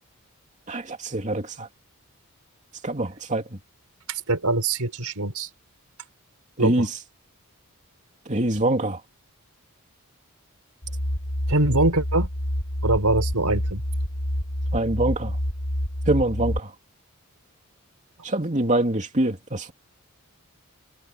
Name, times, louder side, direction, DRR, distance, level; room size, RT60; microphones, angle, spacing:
voice 1, 0.7-1.7 2.8-3.4 6.6-6.9 8.3-9.0 14.7-15.4 16.1-16.7 18.2-19.7, right 1 dB, 35° right, 2.9 m, -24 dB
voice 2, 4.1-5.5 6.6-6.9 11.5-12.3 12.8-13.8, right 2 dB, 90° right, 4.2 m, -23 dB
sound 1, 10.8-16.6, equal, 85° left, 4.6 m, -28 dB
head